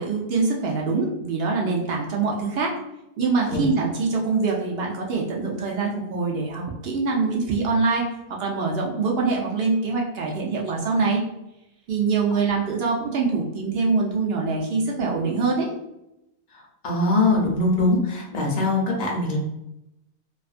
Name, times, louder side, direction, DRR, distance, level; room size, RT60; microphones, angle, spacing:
voice 1, 0.0-2.8 3.2-8.0 8.4-11.2 11.9-15.7, right 4 dB, 65° right, -1 dB, 0.6 m, -24 dB
voice 2, 16.8-19.4, left 2 dB, 50° left, -2 dB, 0.6 m, -22 dB
2.4 x 2.4 x 2.4 m, 0.87 s
omnidirectional pair, 1.5 m